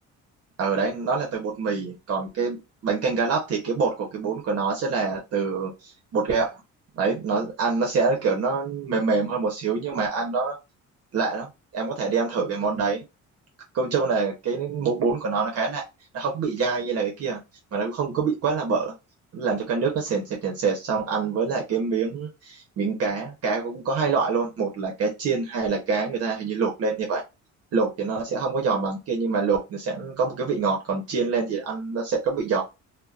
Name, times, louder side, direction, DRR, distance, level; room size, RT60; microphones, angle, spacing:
voice 1, 0.6-6.6 6.9-10.6 11.1-11.5 11.7-13.0 13.7-15.8 16.1-17.4 17.7-18.9 19.3-27.2 27.7-32.6, right 4 dB, 50° right, 0.7 m, -25 dB
2.7 x 2.1 x 2.3 m
cardioid pair, 145°, 31 cm